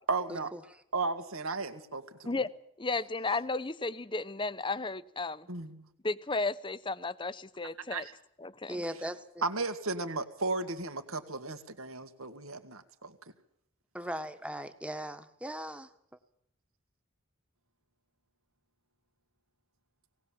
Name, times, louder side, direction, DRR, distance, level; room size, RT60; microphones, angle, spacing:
voice 1, 0.1-0.5 0.9-2.4 5.5-5.9 7.9-8.1 9.4-13.1, right 3 dB, 75° right, 2.1 m, -35 dB
voice 2, 2.8-5.5 6.0-8.1 8.4-8.8, left 3 dB, 25° left, 0.7 m, -34 dB
voice 3, 8.7-9.4 13.9-15.9, equal, 5° right, 1.3 m, -39 dB
19.0 x 19.0 x 7.5 m
head